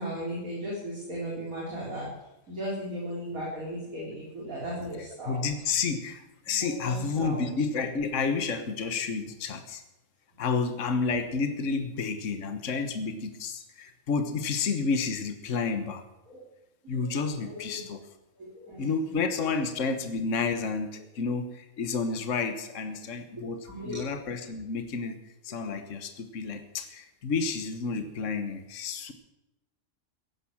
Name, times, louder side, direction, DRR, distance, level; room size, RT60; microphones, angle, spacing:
voice 1, 0.0-2.1 2.5-5.4 6.6-7.4 16.3-16.4 16.8-17.1 17.5-17.8 18.4-18.9 19.1-19.2 23.4-24.0, equal, 70° right, -5 dB, 4.9 m, -36 dB
voice 2, 5.2-9.8 10.4-16.0 16.9-18.1 18.8-25.2 25.4-29.1, left 4 dB, 60° left, 8 dB, 1.6 m, -30 dB
16.5 x 11.0 x 7.3 m, 0.94 s
omnidirectional pair, 1.5 m